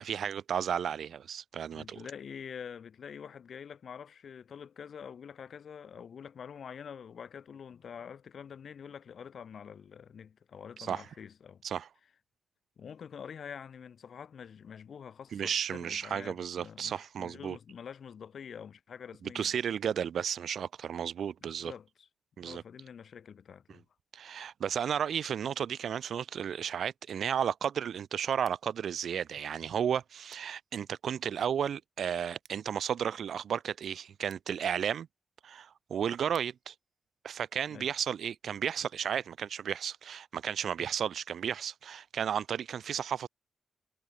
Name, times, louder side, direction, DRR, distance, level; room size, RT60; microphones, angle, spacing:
voice 1, 0.0-2.0 10.9-11.0 11.6-11.9 15.3-17.6 19.3-21.7 22.4-22.6 24.1-35.1 35.4-36.7 37.2-43.3, right 8 dB, 75° right, 0.4 m, -33 dB
voice 2, 1.7-11.6 12.8-19.5 21.4-22.1 22.4-23.8 37.7-37.9, left 7 dB, 65° left, 1.2 m, -46 dB
Scissors, 28.3-38.1, right 6 dB, 50° right, 4.3 m, -68 dB
wide cardioid pair, 130°, 0 cm